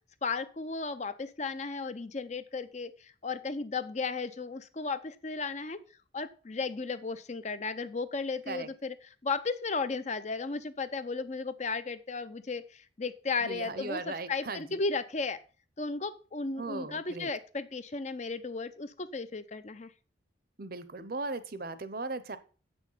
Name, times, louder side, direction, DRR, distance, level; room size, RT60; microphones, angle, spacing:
voice 1, 0.2-5.8 6.1-8.9 9.2-15.4 15.8-19.9, left 4 dB, 35° left, 12 dB, 0.6 m, -35 dB
voice 2, 13.4-14.8 16.6-17.3 20.6-22.4, right 3 dB, 50° right, 13 dB, 0.8 m, -38 dB
8.0 x 6.3 x 5.6 m, 0.36 s
head